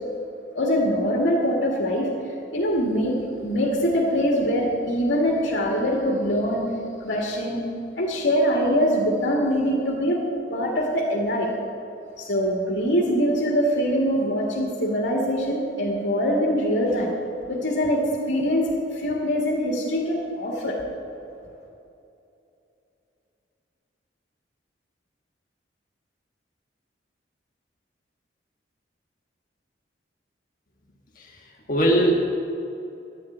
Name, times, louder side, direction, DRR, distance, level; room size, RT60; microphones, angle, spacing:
voice 1, 0.6-2.1 2.5-6.6 7.0-7.6 8.0-10.2 10.5-11.5 12.2-17.1 17.5-18.0 18.3-18.7 18.9-20.8, equal, 80° left, -3 dB, 2.0 m, -23 dB
voice 2, 31.1-32.2, right 1 dB, 45° left, -1 dB, 1.5 m, -22 dB
11.5 x 7.6 x 9.3 m, 2.7 s
head